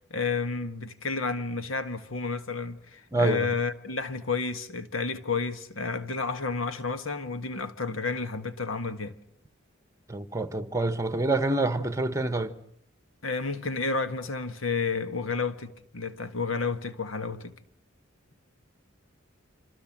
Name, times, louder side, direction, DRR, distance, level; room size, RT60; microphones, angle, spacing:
voice 1, 0.1-9.1 13.2-17.5, left 4 dB, 75° left, 1.7 m, -31 dB
voice 2, 3.1-3.5 10.1-12.6, right 2 dB, 15° right, 1.5 m, -27 dB
27.0 x 27.0 x 7.5 m
head